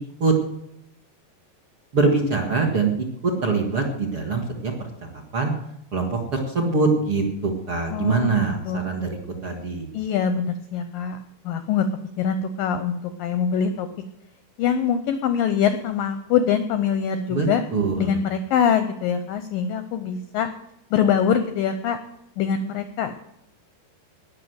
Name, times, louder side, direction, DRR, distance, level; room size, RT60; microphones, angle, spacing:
voice 1, 1.9-4.9 5.3-5.5 5.9-9.9 17.3-17.5 17.7-18.2, right 3 dB, 45° right, -1 dB, 1.8 m, -23 dB
voice 2, 7.9-8.8 9.9-11.2 11.4-11.9 12.2-13.9 14.6-17.6 18.0-20.5 20.9-22.0 22.4-23.1, left 7 dB, 80° left, 10 dB, 2.0 m, -23 dB
19.0 x 6.5 x 7.9 m, 0.81 s
omnidirectional pair, 5.0 m